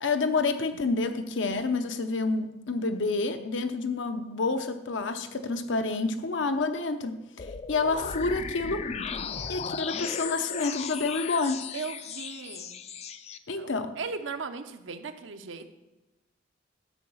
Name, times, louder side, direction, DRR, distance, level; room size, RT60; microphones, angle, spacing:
voice 1, 0.0-8.9 9.5-11.7 13.5-14.0, left 3 dB, 75° left, 9 dB, 0.7 m, -29 dB
sound 1, 7.4-13.4, left 6 dB, 30° left, 0.4 m, -36 dB
voice 2, 11.7-12.8 13.6-15.7, right 4 dB, 80° right, 8 dB, 0.7 m, -37 dB
10.0 x 4.7 x 7.0 m, 1.0 s
head